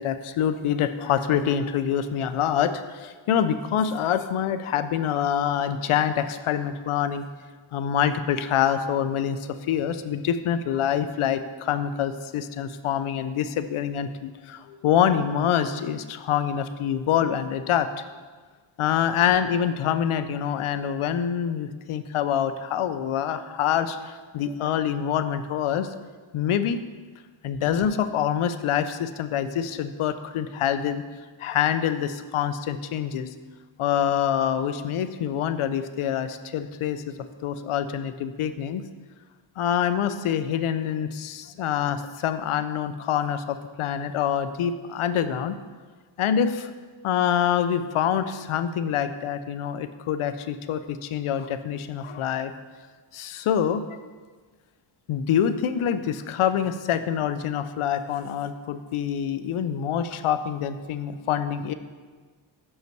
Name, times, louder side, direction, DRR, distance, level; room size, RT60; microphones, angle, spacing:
voice 1, 0.0-7.2 7.7-17.9 18.8-26.0 26.3-26.8 27.4-31.0 31.4-33.3 33.8-37.1 37.4-38.8 39.6-45.6 46.2-46.7 47.0-52.5 53.1-53.8 55.1-61.7, left 9 dB, 80° left, 11 dB, 0.6 m, -26 dB
6.5 x 5.5 x 4.5 m, 1.4 s
wide cardioid pair, 115°, 49 cm